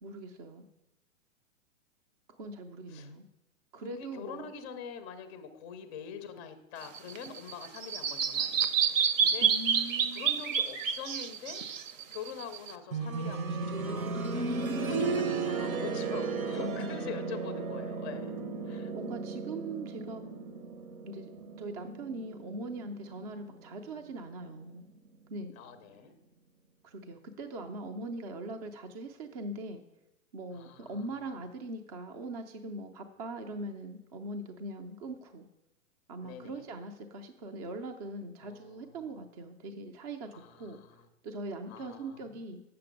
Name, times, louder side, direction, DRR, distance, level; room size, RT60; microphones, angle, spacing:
voice 1, 0.0-0.6 2.4-3.2 3.7-4.5 9.4-10.3 16.6-17.0 18.7-20.2 21.1-21.3 21.6-24.8 25.3-25.5 26.8-29.8 30.3-35.4 36.1-40.8 41.2-42.6, right 2 dB, 30° right, 5 dB, 0.5 m, -41 dB
voice 2, 3.8-9.9 10.1-11.6 12.1-14.5 14.8-18.4 18.7-18.9 25.5-26.1 30.5-31.0 36.2-36.6 38.4-39.0 40.3-41.0 41.7-42.4, left 6 dB, 20° left, 9 dB, 0.5 m, -45 dB
Bird vocalization bird call bird song, 6.8-12.7, right 7 dB, 65° right, 0.9 m, -29 dB
sound 1, 12.9-23.7 25.1-25.2, right 4 dB, 80° right, 1.1 m, -35 dB
8.1 x 6.8 x 5.1 m, 0.93 s
hypercardioid pair, 145°, 42 cm